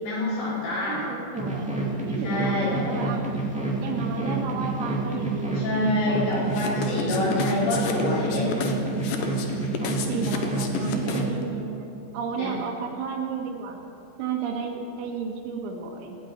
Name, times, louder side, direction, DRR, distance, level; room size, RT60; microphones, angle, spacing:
voice 1, 0.0-1.0 2.2-2.7 5.5-8.6 12.4-12.5, left 2 dB, 70° left, -7 dB, 6.8 m, -27 dB
voice 2, 0.8-3.5 3.8-5.7 6.0-6.6 7.2-7.9 9.8-13.8 14.2-16.2, right 5 dB, 85° right, 0 dB, 3.7 m, -33 dB
sound 1, 1.4-11.3, right 2 dB, 5° right, 1.2 m, -28 dB
sound 2, 6.5-11.4, left 6 dB, 85° left, 1.8 m, -32 dB
16.0 x 8.8 x 9.1 m, 2.8 s
omnidirectional pair, 5.4 m